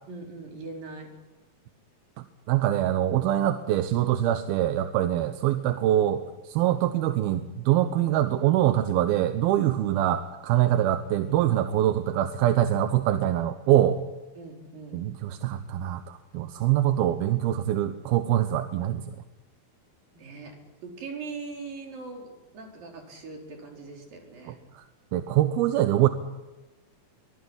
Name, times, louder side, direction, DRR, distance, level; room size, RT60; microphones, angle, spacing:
voice 1, 0.1-1.1 14.4-15.0 20.1-22.3 22.5-24.6, right 4 dB, 70° right, 2 dB, 6.1 m, -41 dB
voice 2, 2.5-14.0 14.9-19.0 24.5-24.6 25.1-26.1, right 12 dB, 90° right, 9 dB, 2.9 m, -24 dB
24.0 x 21.5 x 9.8 m, 1.1 s
omnidirectional pair, 4.2 m